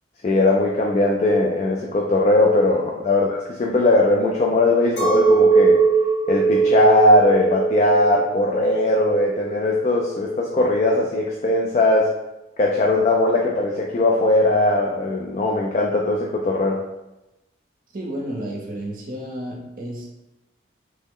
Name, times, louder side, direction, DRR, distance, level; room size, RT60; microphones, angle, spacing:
voice 1, 0.2-5.8 6.3-12.1 12.6-16.8, left 2 dB, 35° left, -2 dB, 0.3 m, -19 dB
Chink clink, 5.0-10.4, right 5 dB, 90° left, 1.0 m, -20 dB
voice 2, 17.9-20.2, right 1 dB, 45° right, -1 dB, 0.6 m, -32 dB
3.2 x 2.0 x 3.6 m, 0.95 s
head